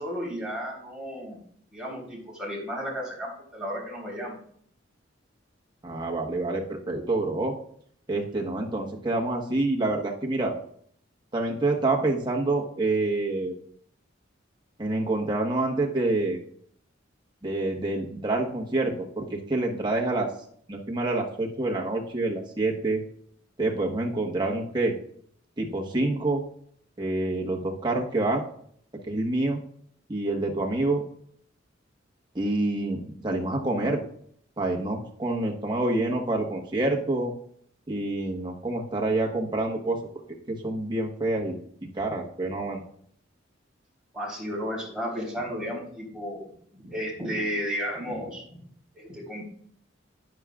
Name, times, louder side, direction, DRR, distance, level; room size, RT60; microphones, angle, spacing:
voice 1, 0.0-1.4 1.7-4.4 44.1-46.4 46.7-48.6 48.9-49.4, equal, 5° right, -4 dB, 3.7 m, -33 dB
voice 2, 5.8-7.5 8.1-10.5 11.3-13.5 14.8-16.4 17.4-20.3 20.7-23.0 23.6-24.9 25.6-26.4 27.0-28.4 29.1-29.6 30.1-31.0 32.3-34.0 34.6-37.3 37.9-40.0 40.5-41.6 41.9-42.8, right 2 dB, 25° right, -1 dB, 1.3 m, -27 dB
10.0 x 9.5 x 2.5 m, 0.63 s
head